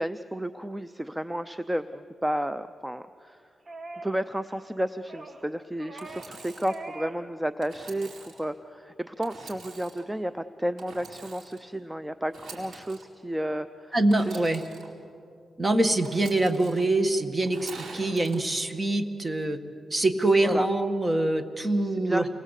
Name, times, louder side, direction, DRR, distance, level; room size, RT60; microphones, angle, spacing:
voice 1, 0.0-3.4 4.0-14.0 14.3-14.5 20.4-20.7 22.0-22.3, right 1 dB, 5° right, 12 dB, 0.6 m, -32 dB
sound 1, 3.7-4.2 4.4-4.7 5.1-5.4 5.8-6.4 6.6-7.2 7.5-7.7, right 2 dB, 45° right, 2.0 m, -42 dB
Engine / Sawing, 6.0-6.8 7.6-8.4 9.2-10.0 10.8-11.6 12.3-13.0 14.1-14.9 16.0-16.8 17.4-18.4, right 4 dB, 80° right, 4.8 m, -45 dB
voice 2, 13.9-14.6 15.6-19.6 19.9-22.3, right 2 dB, 25° right, 7 dB, 1.8 m, -24 dB
28.5 x 21.5 x 8.3 m, 2.4 s
cardioid pair, 90°, 0 cm